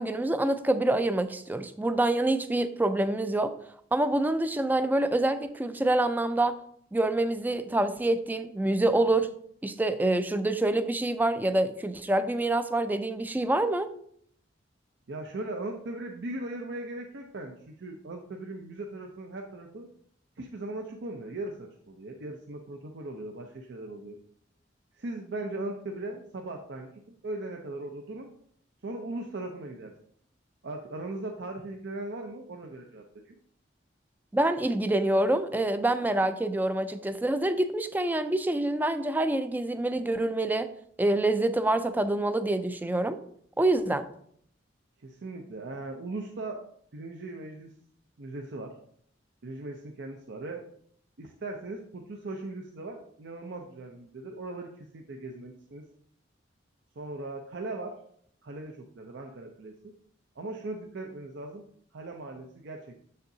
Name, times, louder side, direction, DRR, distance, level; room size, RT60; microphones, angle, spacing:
voice 1, 0.0-3.5 3.9-6.6 6.9-9.3 9.6-13.9 34.3-40.7 41.0-43.2 43.6-44.1, right 1 dB, 10° right, 11 dB, 0.4 m, -26 dB
voice 2, 15.1-19.9 20.4-24.2 24.9-26.9 27.2-28.3 28.8-29.9 30.6-33.4 45.0-46.6 46.9-47.7 48.2-48.7 49.4-50.6 51.2-55.8 57.0-57.9 58.4-59.7 60.4-61.6 61.9-63.0, right 2 dB, 65° right, 3 dB, 0.6 m, -38 dB
7.0 x 6.5 x 2.7 m, 0.65 s
head